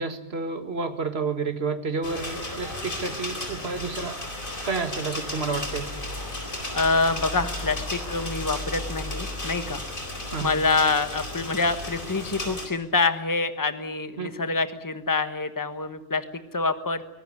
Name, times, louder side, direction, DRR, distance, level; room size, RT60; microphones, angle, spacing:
voice 1, 0.0-4.2 4.7-5.9 10.3-10.5 14.2-14.3, right 4 dB, 80° right, 8 dB, 2.1 m, -30 dB
sound 1, 2.0-12.7, left 1 dB, 55° left, 4.6 m, -34 dB
voice 2, 6.7-9.8 10.4-17.0, left 3 dB, 20° left, 10 dB, 1.3 m, -26 dB
24.0 x 19.0 x 9.8 m, 0.91 s
omnidirectional pair, 1.1 m